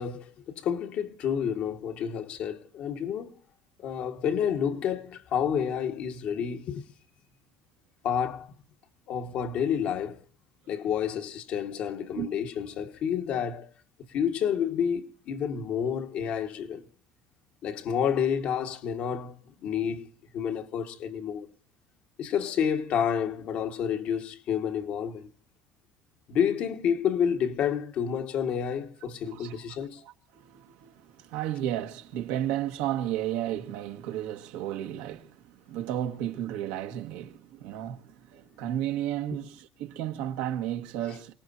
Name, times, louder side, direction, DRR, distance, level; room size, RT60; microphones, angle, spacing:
voice 1, 0.0-3.3 3.8-6.8 8.0-8.5 9.1-10.2 10.7-13.7 14.1-16.8 17.6-19.3 19.6-20.1 20.3-21.5 22.2-25.3 26.3-30.0, left 8 dB, 60° left, 1.5 m, -29 dB
voice 2, 29.2-29.6 30.0-41.3, right 12 dB, 85° right, 1.4 m, -33 dB
28.5 x 18.5 x 2.6 m
cardioid pair, 115°, 3 cm